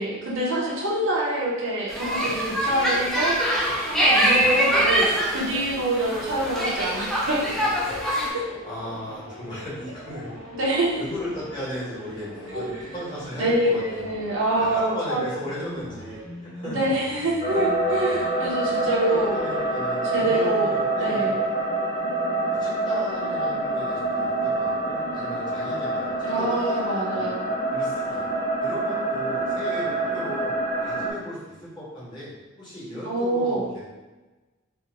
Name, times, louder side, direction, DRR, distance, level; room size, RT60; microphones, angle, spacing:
voice 1, 0.0-3.4 3.9-7.7 8.3-8.5 10.6-11.0 12.5-12.7 13.4-15.3 16.6-19.3 20.0-21.4 26.2-27.4 33.0-33.7, right 1 dB, 70° right, -4 dB, 0.8 m, -26 dB
sound 1, 1.9-8.3, equal, ahead, 0.4 m, -23 dB
sound 2, 7.4-20.7, equal, 75° left, 1.0 m, -42 dB
voice 2, 8.6-10.3 11.0-14.1 14.6-16.9 19.1-21.3 22.6-26.8 27.1-27.3 27.7-28.2 28.6-30.5 30.8-32.3 32.6-33.8, left 1 dB, 25° left, -9 dB, 1.1 m, -36 dB
sound 3, 17.4-31.1, right 2 dB, 50° left, 0.6 m, -26 dB
2.7 x 2.1 x 3.9 m, 1.2 s
head